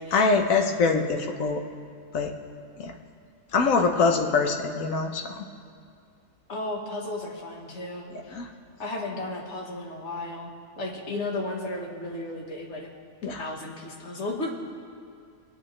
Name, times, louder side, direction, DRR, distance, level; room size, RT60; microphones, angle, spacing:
voice 1, 0.1-1.6 2.1-2.3 2.8-2.9 3.5-5.5 8.1-8.5 13.2-13.4, left 4 dB, 70° left, 4 dB, 1.3 m, -24 dB
voice 2, 6.5-8.4 8.8-12.9 13.4-14.6, left 2 dB, 55° left, 0 dB, 1.7 m, -34 dB
24.5 x 8.5 x 3.3 m, 2.3 s
omnidirectional pair, 1.5 m